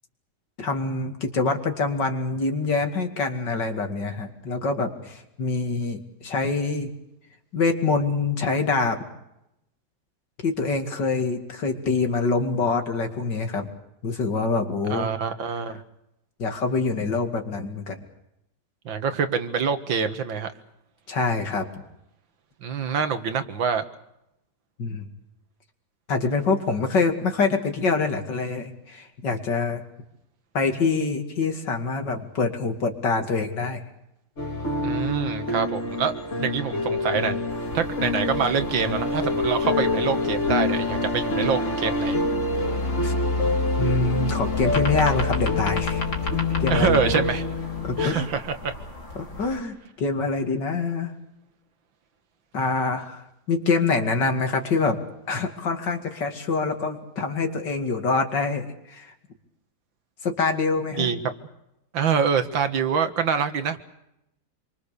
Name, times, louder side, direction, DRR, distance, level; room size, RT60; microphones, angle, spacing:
voice 1, 0.6-6.9 7.5-9.0 10.4-13.7 14.0-15.1 16.4-18.0 21.1-21.7 24.8-25.1 26.1-29.8 30.5-33.8 43.0-43.1 43.8-46.0 46.6-47.2 47.8-48.3 49.2-51.1 52.5-55.0 55.3-59.1 60.2-61.1, left 4 dB, 65° left, 5 dB, 3.0 m, -25 dB
voice 2, 14.9-15.8 18.9-20.5 22.6-23.8 34.8-36.1 36.4-37.4 37.7-42.2 46.7-47.4 48.0-48.7 61.0-61.3 61.9-63.8, right 6 dB, 80° right, 9 dB, 2.3 m, -25 dB
sound 1, 34.4-48.1, left 2 dB, 40° left, 2.6 m, -26 dB
sound 2, 37.5-49.6, left 3 dB, 85° left, 4.2 m, -36 dB
27.5 x 23.5 x 6.8 m, 0.84 s
omnidirectional pair, 2.1 m